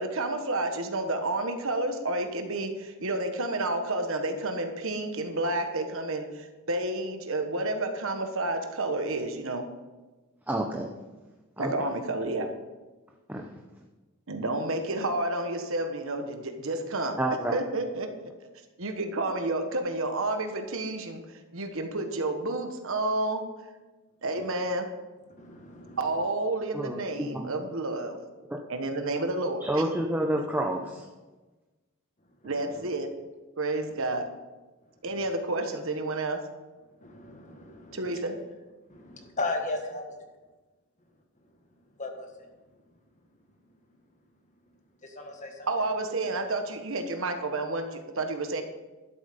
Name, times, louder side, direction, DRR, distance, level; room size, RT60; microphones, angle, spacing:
voice 1, 0.0-9.7 11.6-12.5 14.3-17.2 17.5-18.1 18.8-23.4 24.2-24.9 26.0-28.2 28.7-29.8 32.4-33.1 33.6-34.3 35.0-36.4 37.9-38.4 45.7-48.6, right 2 dB, 60° right, 6 dB, 1.3 m, -30 dB
voice 2, 10.5-10.9 11.6-11.7 13.3-13.5 17.2-17.6 26.7-27.5 28.5-28.6 29.6-31.1, right 1 dB, 10° right, 0 dB, 0.8 m, -29 dB
voice 3, 25.4-26.0 32.4-32.9 35.1-35.3 37.0-38.2 38.9-40.0 42.0-42.3 45.0-45.7, left 2 dB, 35° left, 4 dB, 1.5 m, -36 dB
12.0 x 8.0 x 5.2 m, 1.2 s
head